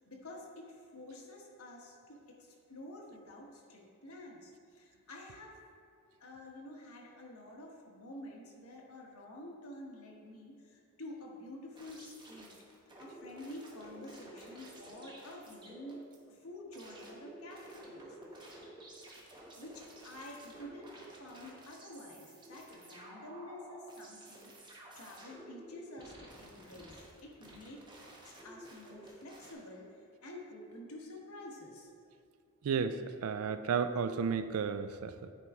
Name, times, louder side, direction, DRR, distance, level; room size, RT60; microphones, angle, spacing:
voice 1, 0.0-5.8 6.2-12.6 13.0-16.0 16.3-18.2 18.4-18.7 19.6-27.8 28.2-31.9 33.1-33.2, left 1 dB, 80° left, -1 dB, 1.3 m, -49 dB
sound 1, 11.7-16.2 16.7-29.5, right 1 dB, 20° right, 1.0 m, -52 dB
voice 2, 32.6-35.3, right 6 dB, 70° right, 11 dB, 0.4 m, -33 dB
9.8 x 4.6 x 3.6 m, 2.3 s
head